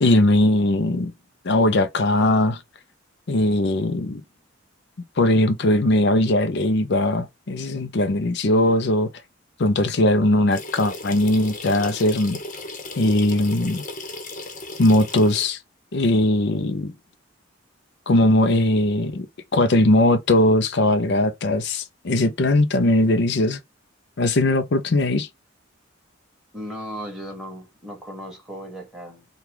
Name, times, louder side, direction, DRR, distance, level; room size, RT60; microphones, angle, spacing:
voice 1, 0.0-1.1 1.4-2.6 3.3-4.2 5.2-9.1 9.6-12.4 13.0-13.8 14.8-15.6 15.9-16.9 18.1-19.3 19.5-23.6 24.2-25.3, left 1 dB, 60° left, 0.6 m, -19 dB
sound 1, 10.5-15.5, left 2 dB, 40° left, 1.0 m, -36 dB
voice 2, 26.5-29.3, equal, 5° right, 1.8 m, -36 dB
5.7 x 2.4 x 3.6 m
head